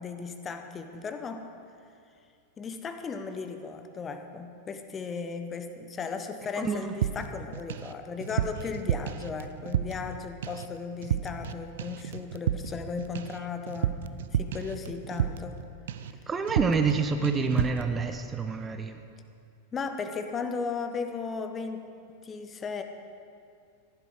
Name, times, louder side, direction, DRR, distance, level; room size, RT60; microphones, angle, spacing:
voice 1, 0.0-1.5 2.6-14.0 14.3-15.6 19.7-21.8 22.1-22.8, left 5 dB, 20° left, 7 dB, 0.9 m, -36 dB
voice 2, 6.6-6.9 16.3-19.0, right 5 dB, 20° right, 7 dB, 0.6 m, -27 dB
sound 1, 7.0-7.9 8.2-10.2 10.4-10.7 11.0-11.5 11.8-15.6 15.9-16.2 16.5-17.0 17.2-17.9, right 10 dB, 60° right, 0.5 m, -31 dB
15.0 x 11.5 x 4.9 m, 2.4 s
figure-of-eight pair, 90°, 0 cm